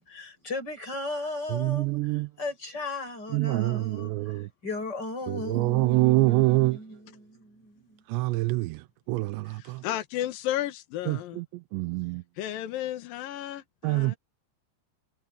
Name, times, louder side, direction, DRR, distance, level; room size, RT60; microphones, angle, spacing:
voice 1, 0.0-8.0, left 2 dB, 20° left, 8.0 m, -37 dB
voice 2, 1.5-2.3 3.3-4.5 5.3-6.8 8.1-8.8 9.1-9.8 11.1-11.5 11.7-12.2 13.8-14.2, right 21 dB, 80° right, 2.8 m, -25 dB
voice 3, 9.8-11.4 12.4-14.2, left 13 dB, 65° left, 2.6 m, -33 dB
omnidirectional pair, 5.3 m